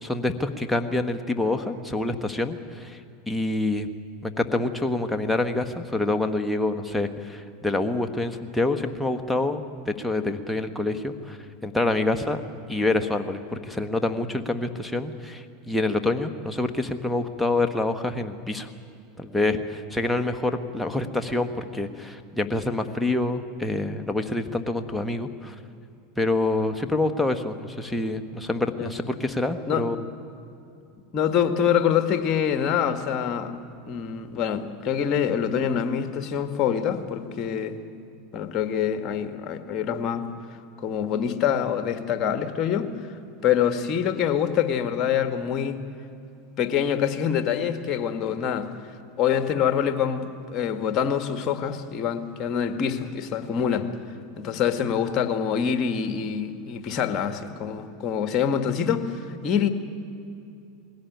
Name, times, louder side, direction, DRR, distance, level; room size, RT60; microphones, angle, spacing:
voice 1, 0.0-3.0 3.3-3.9 4.2-12.4 12.7-18.7 19.2-25.5 26.2-30.0, left 2 dB, 5° left, 4 dB, 1.5 m, -26 dB
voice 2, 31.1-33.6 33.9-37.8 38.3-40.3 40.8-43.2 43.4-45.8 46.6-48.7 49.2-53.9 54.4-59.7, left 8 dB, 40° left, 9 dB, 1.8 m, -25 dB
21.0 x 17.0 x 9.4 m, 2.6 s
hypercardioid pair, 95°, 0 cm